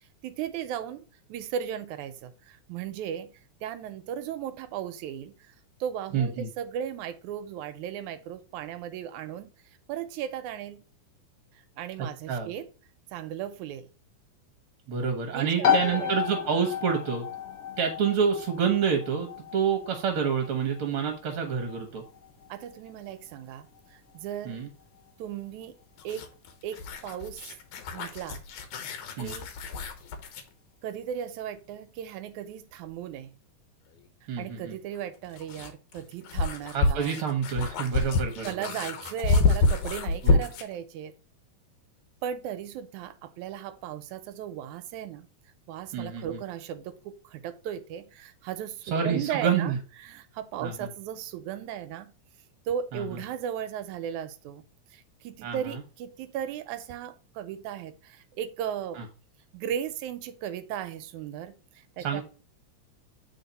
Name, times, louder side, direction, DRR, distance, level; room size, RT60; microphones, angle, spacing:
voice 1, 0.2-3.3 3.6-5.6 5.8-9.5 9.9-10.8 11.8-12.7 13.1-13.9 15.3-16.1 22.5-24.6 25.2-25.8 26.0-26.3 26.6-27.6 27.9-28.4 29.2-29.5 30.8-33.3 34.4-37.1 38.4-41.1 42.2-45.3 45.7-49.7 50.0-52.1 52.7-54.6 54.9-59.0 59.5-62.2, right 9 dB, 90° right, 2.1 m, -36 dB
voice 2, 6.1-6.5 12.3-12.5 14.9-17.3 17.8-22.0 24.4-24.7 29.2-29.3 34.3-34.8 36.7-38.7 40.2-40.4 45.9-46.4 48.9-49.8 50.6-50.9 52.9-53.2 55.4-55.8 58.9-59.0 62.0-62.2, right 6 dB, 60° right, 1.6 m, -28 dB
sound 1, 15.6-30.1, left 8 dB, 70° left, 0.9 m, -34 dB
sound 2, 26.0-30.5 32.9-33.0 35.0-40.8, left 3 dB, 90° left, 2.4 m, -28 dB
8.0 x 4.2 x 4.0 m
omnidirectional pair, 3.4 m